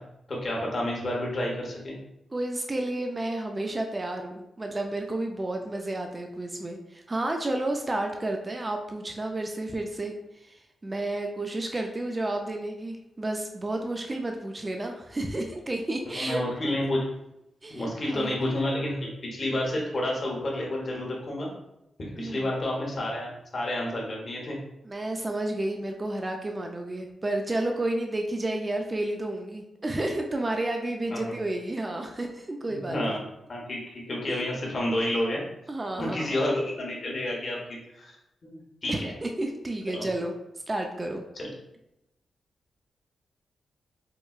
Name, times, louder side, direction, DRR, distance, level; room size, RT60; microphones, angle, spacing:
voice 1, 0.3-1.9 16.0-17.1 17.7-21.5 22.0-24.6 31.1-31.4 32.7-33.2 33.5-35.4 36.0-38.2 38.4-39.1 39.9-40.1 41.4-41.5, left 1 dB, 45° left, -3 dB, 1.0 m, -30 dB
voice 2, 2.3-10.1 10.4-16.4 17.6-18.4 22.2-22.5 24.8-33.2 34.3-34.4 35.7-36.3 38.9-40.3 40.7-41.2, right 1 dB, 25° right, 3 dB, 0.3 m, -31 dB
4.6 x 2.2 x 2.3 m, 0.88 s
cardioid pair, 100°, 0 cm